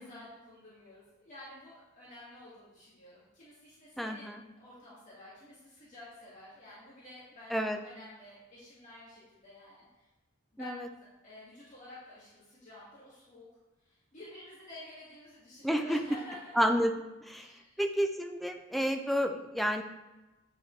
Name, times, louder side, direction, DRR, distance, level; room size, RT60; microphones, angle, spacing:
voice 1, 0.0-10.1 10.5-13.5 13.8-16.5 17.4-17.8 18.7-19.1, left 1 dB, 35° left, -9 dB, 2.1 m, -51 dB
voice 2, 4.0-4.4 7.5-7.8 10.6-10.8 15.6-16.0 16.6-16.9 17.2-17.5 17.8-19.8, equal, ahead, 5 dB, 0.4 m, -30 dB
8.3 x 6.4 x 3.2 m, 1.1 s
head